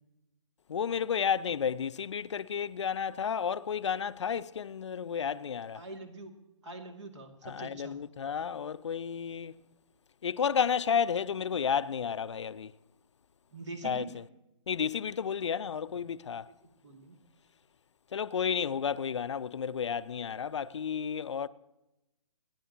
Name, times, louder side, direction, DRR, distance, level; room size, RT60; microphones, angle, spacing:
voice 1, 0.7-5.8 7.4-9.5 10.2-12.7 13.8-14.0 14.7-16.5 18.1-21.5, left 7 dB, 60° left, 0.5 m, -32 dB
voice 2, 5.7-6.3 6.6-8.0 13.5-14.1 15.9-16.0 16.6-17.2, right 3 dB, 60° right, 2.4 m, -44 dB
27.0 x 10.5 x 2.9 m
figure-of-eight pair, 135°, 17 cm